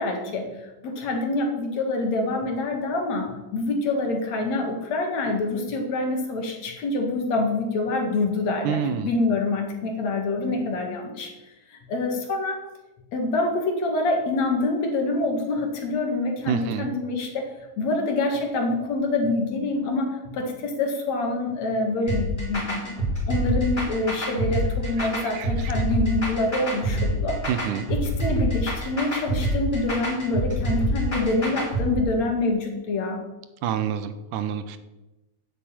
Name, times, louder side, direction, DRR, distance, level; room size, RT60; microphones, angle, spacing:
voice 1, 0.0-11.3 11.7-12.6 13.1-23.0 23.3-27.4 27.9-33.2, left 2 dB, 65° left, 2 dB, 3.2 m, -26 dB
voice 2, 8.6-9.1 16.5-16.9 25.0-25.1 25.3-25.7 27.5-27.9 33.6-34.8, right 8 dB, 90° right, 11 dB, 2.4 m, -27 dB
sound 1, 22.1-31.9, right 1 dB, 15° left, 4.3 m, -26 dB
9.8 x 8.0 x 8.9 m, 1.0 s
omnidirectional pair, 3.5 m